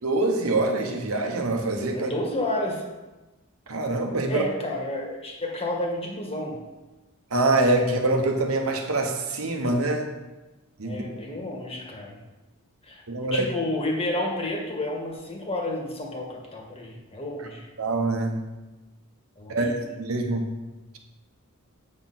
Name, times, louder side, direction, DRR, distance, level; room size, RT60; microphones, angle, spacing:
voice 1, 0.0-2.1 3.7-4.4 7.3-10.1 10.8-11.0 13.1-13.5 17.8-18.4 19.5-20.5, right 2 dB, 75° right, 3 dB, 1.1 m, -24 dB
voice 2, 1.9-2.9 4.3-6.6 10.8-12.2 12.8-17.7 19.4-19.9, left 1 dB, 30° left, 0 dB, 1.5 m, -31 dB
7.8 x 6.2 x 4.2 m, 1.1 s
head